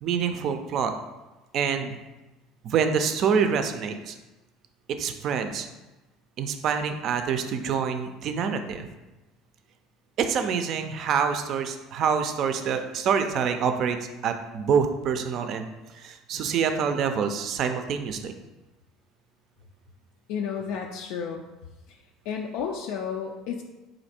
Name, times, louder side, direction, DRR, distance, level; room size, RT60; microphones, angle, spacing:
voice 1, 0.0-0.9 1.5-1.9 2.6-4.2 5.0-5.7 6.4-8.9 10.2-14.0 14.2-15.7 15.9-18.3, right 6 dB, 50° right, 7 dB, 0.4 m, -26 dB
voice 2, 20.3-21.4 21.9-23.6, left 7 dB, 75° left, 1 dB, 0.4 m, -32 dB
4.1 x 2.6 x 4.2 m, 1.1 s
supercardioid pair, 110°, 0 cm